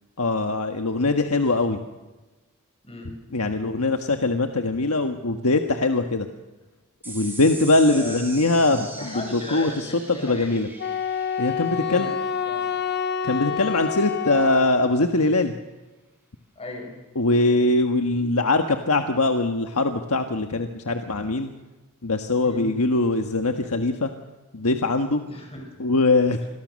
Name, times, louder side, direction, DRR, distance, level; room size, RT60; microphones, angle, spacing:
voice 1, 0.2-1.8 3.3-6.3 7.1-8.9 9.1-10.7 11.4-12.1 13.2-15.5 17.1-21.5 22.0-24.1 24.5-25.2 25.8-26.4, left 2 dB, 75° left, 5 dB, 1.5 m, -22 dB
voice 2, 2.8-3.2 7.8-8.2 9.0-10.5 11.7-12.6 16.6-17.0 22.4-22.7 25.3-25.6, left 2 dB, 25° left, 2 dB, 7.1 m, -37 dB
sound 1, 7.0-13.8, right 2 dB, 10° right, 5.9 m, -41 dB
Wind instrument woodwind instrument, 10.8-15.1, left 7 dB, 50° left, 0.9 m, -28 dB
27.5 x 22.0 x 6.5 m, 1.2 s
head